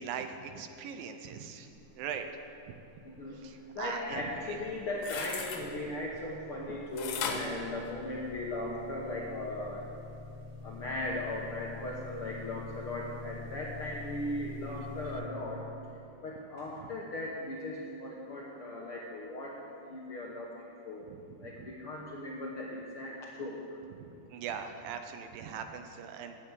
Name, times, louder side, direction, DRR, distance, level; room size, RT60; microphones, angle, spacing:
voice 1, 0.0-1.7 2.0-2.3 3.4-4.6 5.6-5.9 16.8-16.9 21.1-21.7 24.0-26.4, right 7 dB, 80° right, 7 dB, 2.6 m, -41 dB
voice 2, 3.0-3.5 3.7-9.8 10.6-15.6 16.2-19.6 19.9-21.0 21.4-23.6, left 1 dB, 65° left, -3 dB, 1.4 m, -38 dB
sound 1, 4.3-15.2, left 4 dB, 65° right, 4.9 m, -47 dB
sound 2, 4.7-5.6 7.0-8.5 9.0-9.1, left 6 dB, 85° left, 2.9 m, -37 dB
15.5 x 7.1 x 8.4 m, 2.7 s
omnidirectional pair, 4.0 m